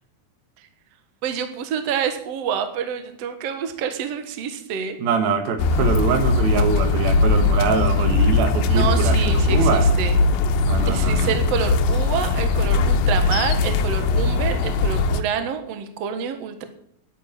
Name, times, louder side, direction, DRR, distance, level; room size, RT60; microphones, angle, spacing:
voice 1, 1.2-5.0 7.2-7.3 8.7-10.2 10.9-16.7, right 7 dB, 55° right, 7 dB, 2.1 m, -27 dB
voice 2, 5.0-9.9 10.7-11.3, right 5 dB, 75° right, 7 dB, 3.4 m, -23 dB
sound 1, 5.6-15.2, left 3 dB, 80° left, 2.6 m, -20 dB
11.0 x 9.2 x 9.1 m, 0.71 s
omnidirectional pair, 4.3 m